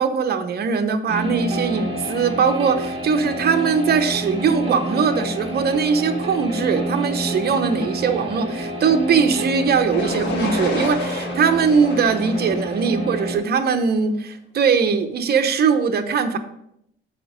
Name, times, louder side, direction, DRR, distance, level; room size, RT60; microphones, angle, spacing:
voice 1, 0.0-16.4, right 6 dB, 55° right, 7 dB, 0.9 m, -20 dB
sound 1, 1.1-13.4, right 1 dB, 30° right, 2.4 m, -28 dB
sound 2, 9.9-13.8, left 3 dB, 60° left, 2.1 m, -31 dB
7.7 x 5.1 x 5.0 m, 0.76 s
cardioid pair, 90°, 20 cm